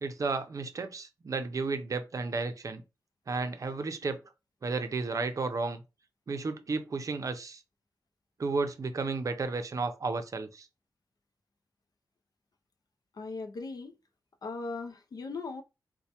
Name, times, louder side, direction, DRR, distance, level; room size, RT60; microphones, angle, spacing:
voice 1, 0.0-2.8 3.3-4.2 4.6-5.8 6.3-7.6 8.4-10.7, right 3 dB, 50° right, 0.5 m, -33 dB
voice 2, 13.1-13.9 14.4-15.6, left 3 dB, 60° left, 0.5 m, -38 dB
4.3 x 2.1 x 2.8 m
wide cardioid pair, 120°, 7 cm